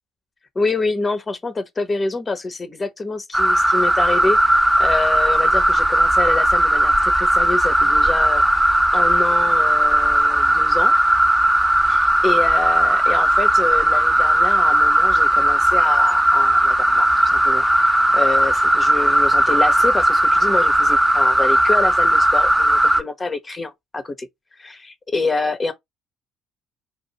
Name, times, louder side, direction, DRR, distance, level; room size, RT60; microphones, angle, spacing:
voice 1, 0.5-8.4 8.9-10.9 11.9-24.3 24.6-25.7, left 3 dB, 30° left, 0.9 m, -26 dB
sound 1, 3.3-23.0, right 1 dB, 5° right, 1.0 m, -17 dB
5.0 x 2.7 x 2.9 m
figure-of-eight pair, 50°, 0 cm